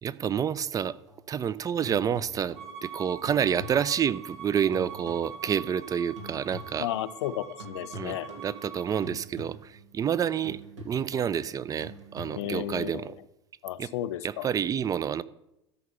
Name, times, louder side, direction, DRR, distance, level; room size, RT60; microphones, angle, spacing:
voice 1, 0.0-1.0 1.3-2.6 2.8-6.9 7.9-8.2 8.4-10.6 10.8-13.0 13.8-13.9 14.2-15.2, right 8 dB, 25° right, 18 dB, 0.5 m, -28 dB
sound 1, 1.1-7.3 7.6-13.0, equal, 75° right, 2.2 m, -47 dB
Bowed string instrument, 2.6-9.1, right 6 dB, 40° right, 3.0 m, -44 dB
voice 2, 6.8-8.3 12.3-13.2 13.6-14.5, left 13 dB, 65° left, 15 dB, 0.6 m, -33 dB
13.0 x 5.5 x 6.9 m, 0.87 s
figure-of-eight pair, 75°, 16 cm